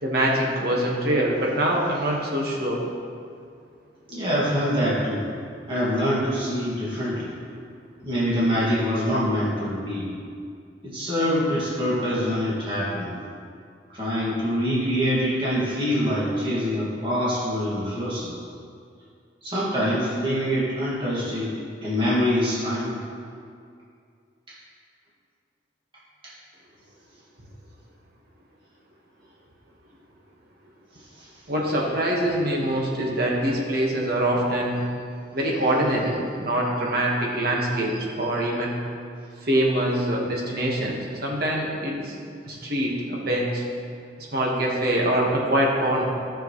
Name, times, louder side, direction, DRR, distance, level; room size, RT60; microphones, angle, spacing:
voice 1, 0.0-2.8 31.5-34.8 35.3-38.8 39.4-42.2 42.5-43.6 44.2-46.1, right 1 dB, 55° right, -2 dB, 1.6 m, -24 dB
voice 2, 4.1-5.3 5.7-7.3 8.0-10.0 10.8-13.1 13.9-18.3 19.4-21.5 21.8-22.9 26.2-26.3 31.2-31.3 32.6-32.7, equal, 30° right, -9 dB, 2.1 m, -25 dB
13.0 x 6.4 x 3.2 m, 2.3 s
head